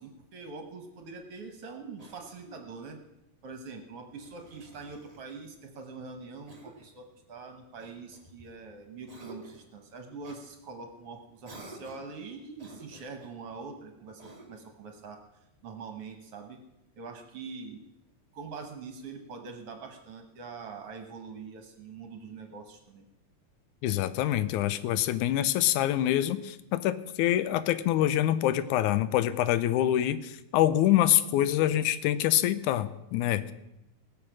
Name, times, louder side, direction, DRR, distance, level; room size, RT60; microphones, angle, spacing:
voice 1, 0.0-3.0 3.4-15.2 15.6-16.6 17.0-17.8 18.3-23.1, right 4 dB, 60° right, 4 dB, 1.8 m, -44 dB
Cough, 2.0-2.7 4.1-5.3 6.5-7.0 7.8-8.6 9.1-9.7 10.2-10.4 11.4-12.2 12.6-13.4 14.2-14.8, right 1 dB, 35° right, 0.6 m, -50 dB
voice 2, 23.8-33.5, left 12 dB, 85° left, 15 dB, 2.1 m, -25 dB
18.5 x 7.3 x 6.2 m, 0.89 s
omnidirectional pair, 3.5 m